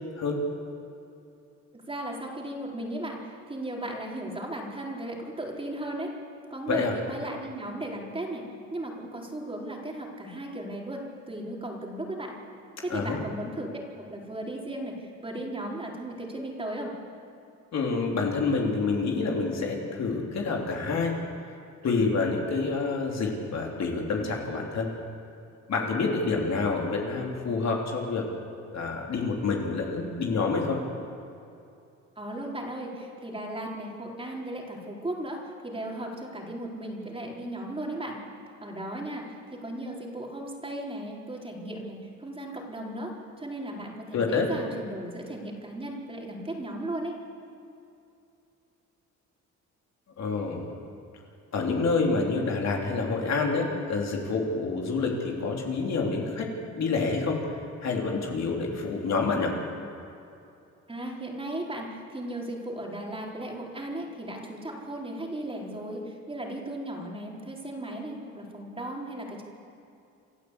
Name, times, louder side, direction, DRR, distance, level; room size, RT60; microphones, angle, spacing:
voice 1, 1.9-6.2 6.5-12.4 12.8-13.7 14.0-17.0 32.2-38.2 38.6-47.2 60.9-69.4, right 1 dB, 20° right, -2 dB, 4.1 m, -36 dB
voice 2, 17.7-21.2 21.8-24.9 25.7-28.3 28.7-30.8 44.1-44.5 50.2-50.8 51.5-57.4 57.8-59.5, left 4 dB, 60° left, -1 dB, 3.6 m, -27 dB
28.0 x 12.0 x 8.3 m, 2.6 s
cardioid pair, 90°, 30 cm